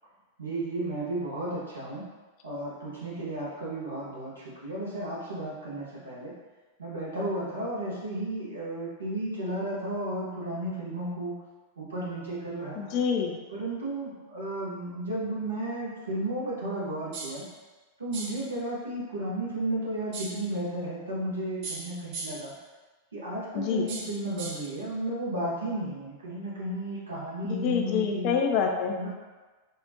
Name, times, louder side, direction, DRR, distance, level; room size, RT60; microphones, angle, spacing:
voice 1, 0.4-2.1 2.4-6.3 6.8-11.3 11.8-13.0 13.5-17.4 18.0-22.5 23.1-28.3 28.9-29.1, right 1 dB, 70° right, -7 dB, 1.1 m, -33 dB
voice 2, 12.8-13.4 23.5-23.9 27.4-28.9, left 6 dB, 40° left, 3 dB, 0.4 m, -27 dB
sound 1, 17.1-17.5 18.1-18.5 20.1-20.5 21.6-22.5 23.9-24.7, right 3 dB, 45° right, 0.5 m, -39 dB
3.5 x 2.4 x 2.8 m, 1.3 s
figure-of-eight pair, 90°, 0 cm